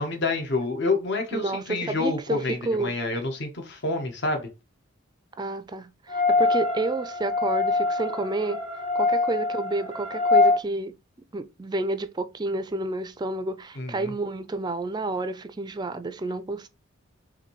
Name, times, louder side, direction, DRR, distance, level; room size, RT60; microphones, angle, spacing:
voice 1, 0.0-4.5 13.8-14.1, left 3 dB, 60° left, 1.0 m, -28 dB
voice 2, 1.3-2.9 5.4-8.6 8.9-10.9 11.3-16.7, right 2 dB, 20° right, 0.4 m, -30 dB
sound 1, 6.1-10.6, left 3 dB, 40° left, 1.2 m, -24 dB
5.8 x 2.6 x 3.0 m
head